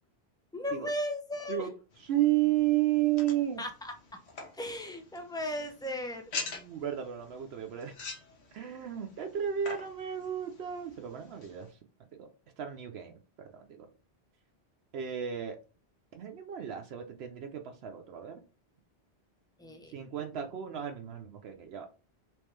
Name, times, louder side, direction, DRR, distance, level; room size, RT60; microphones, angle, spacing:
voice 1, 0.5-1.7 3.6-3.9 4.6-6.2 19.6-19.9, left 1 dB, 5° left, 4 dB, 0.4 m, -36 dB
sound 1, 1.9-11.7, left 4 dB, 80° left, 1.2 m, -46 dB
voice 2, 2.0-3.6 6.3-7.9 8.5-11.8 12.1-12.3 12.6-13.9 14.9-15.6 16.1-18.4 19.9-21.9, right 12 dB, 75° right, 4 dB, 0.8 m, -33 dB
3.5 x 3.1 x 3.1 m, 0.34 s
omnidirectional pair, 1.1 m